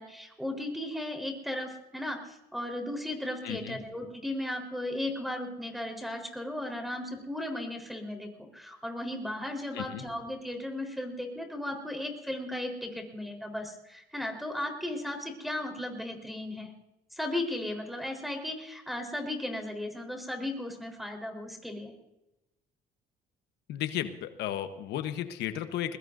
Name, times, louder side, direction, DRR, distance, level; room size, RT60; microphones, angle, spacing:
voice 1, 0.0-16.7 17.1-21.9, left 1 dB, ahead, 3 dB, 3.9 m, -36 dB
voice 2, 3.4-3.8 9.7-10.0 23.7-26.0, left 11 dB, 85° left, 9 dB, 1.1 m, -34 dB
21.5 x 21.0 x 2.6 m, 0.94 s
cardioid pair, 110°, 17 cm